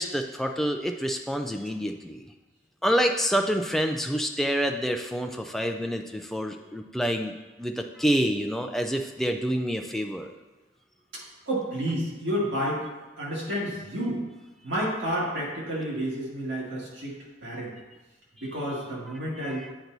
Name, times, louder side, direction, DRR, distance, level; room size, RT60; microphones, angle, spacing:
voice 1, 0.0-2.3 2.8-10.3 19.4-19.7, equal, ahead, 4 dB, 0.3 m, -27 dB
voice 2, 11.1-14.2 14.6-17.1 17.4-17.7 18.4-19.7, equal, 90° right, -6 dB, 2.1 m, -30 dB
9.0 x 4.4 x 2.7 m, 1.2 s
head